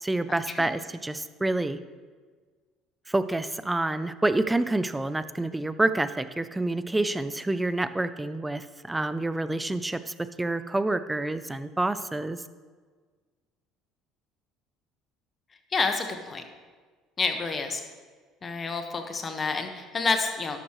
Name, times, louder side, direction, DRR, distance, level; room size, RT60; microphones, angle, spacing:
voice 1, 0.0-1.8 3.1-12.4, right 2 dB, 10° right, 13 dB, 0.6 m, -28 dB
voice 2, 15.7-16.4 17.2-17.8 18.4-20.6, left 4 dB, 35° left, 6 dB, 1.5 m, -28 dB
12.5 x 11.0 x 3.2 m, 1.5 s
supercardioid pair, 75°, 0 cm